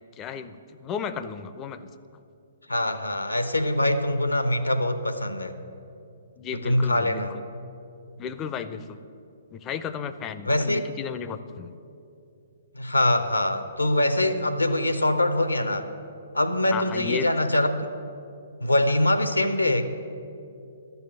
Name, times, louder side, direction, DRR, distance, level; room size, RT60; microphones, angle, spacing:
voice 1, 0.2-1.8 6.4-7.4 8.2-9.0 9.5-11.7 16.7-17.3, left 7 dB, 20° left, 12 dB, 0.5 m, -34 dB
voice 2, 2.7-5.6 6.6-7.3 10.4-10.9 12.7-15.9 16.3-17.9 18.6-19.8, left 1 dB, 80° left, 9 dB, 0.9 m, -23 dB
12.0 x 7.0 x 9.3 m, 2.6 s
figure-of-eight pair, 120°, 0 cm